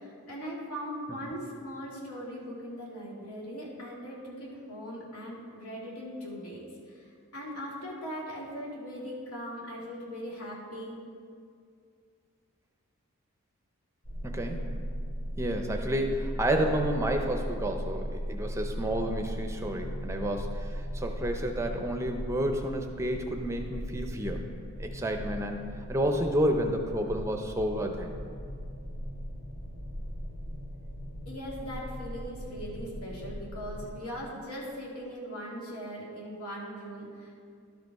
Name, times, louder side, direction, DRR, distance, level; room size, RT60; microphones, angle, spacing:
voice 1, 0.0-11.0 31.3-37.3, equal, 85° left, -5 dB, 2.2 m, -40 dB
sound 1, 14.0-33.9, equal, 55° left, 1.5 m, -37 dB
voice 2, 14.2-14.7 15.4-24.5 24.8-28.1, right 1 dB, 15° right, 4 dB, 0.5 m, -30 dB
12.0 x 5.2 x 4.7 m, 2.3 s
head